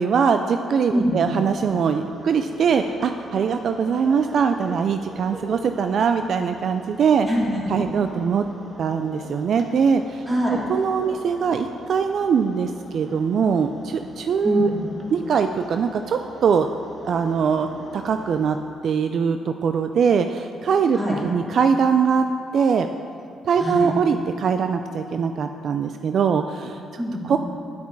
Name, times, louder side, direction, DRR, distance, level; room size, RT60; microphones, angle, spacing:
voice 1, 0.0-7.3 7.7-8.4 8.8-10.2 10.7-14.7 15.1-16.7 17.1-17.7 17.9-18.6 18.8-22.2 22.5-22.9 23.5-26.8 27.3-27.4, right 6 dB, 60° right, 7 dB, 0.3 m, -22 dB
voice 2, 0.9-1.3 7.2-7.7 10.3-10.6 14.4-14.8 20.9-21.2 23.6-23.9 27.0-27.4, equal, 15° right, -5 dB, 2.7 m, -24 dB
sound 1, 1.4-18.6, right 1 dB, 35° right, 1.5 m, -43 dB
9.7 x 8.1 x 4.7 m, 2.6 s
cardioid pair, 90°, 0 cm